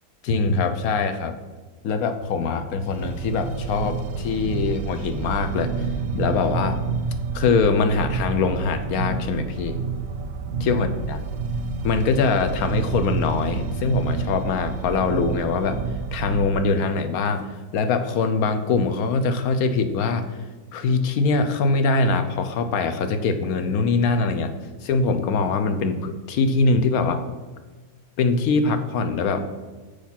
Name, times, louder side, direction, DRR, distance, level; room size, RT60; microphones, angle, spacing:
voice 1, 0.2-1.4 1.8-6.8 7.3-9.8 10.6-11.2 11.8-15.8 16.1-20.4 20.7-24.5 24.8-27.4 28.2-29.5, left 4 dB, 75° left, 8 dB, 1.2 m, -23 dB
sound 1, 2.9-16.5, right 4 dB, 70° right, 0.9 m, -29 dB
6.7 x 5.1 x 5.7 m, 1.3 s
omnidirectional pair, 1.6 m